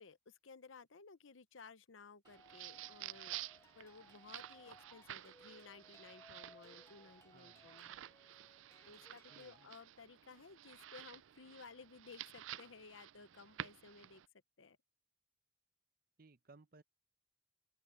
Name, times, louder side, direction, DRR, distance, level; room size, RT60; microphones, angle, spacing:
voice 1, 0.0-3.4 3.7-8.0 8.9-14.2 14.6-14.8, left 4 dB, 85° left, 0.8 m, -57 dB
sound 1, 2.2-9.6, left 1 dB, 15° left, 1.4 m, -64 dB
sound 2, 2.2-14.3, right 13 dB, 85° right, 0.4 m, -52 dB
voice 2, 7.3-7.7 9.3-9.7 16.2-16.8, right 3 dB, 50° right, 0.8 m, -63 dB
open air
head